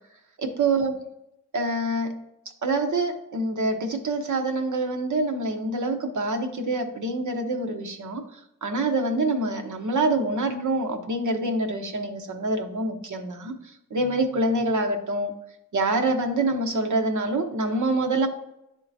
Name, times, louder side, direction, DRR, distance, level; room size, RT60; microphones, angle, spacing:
voice 1, 0.4-1.0 1.5-2.2 2.6-8.2 8.6-13.5 13.9-15.3 15.7-18.3, right 2 dB, 65° right, 4 dB, 1.0 m, -26 dB
11.0 x 3.7 x 2.7 m, 0.83 s
wide cardioid pair, 100°, 32 cm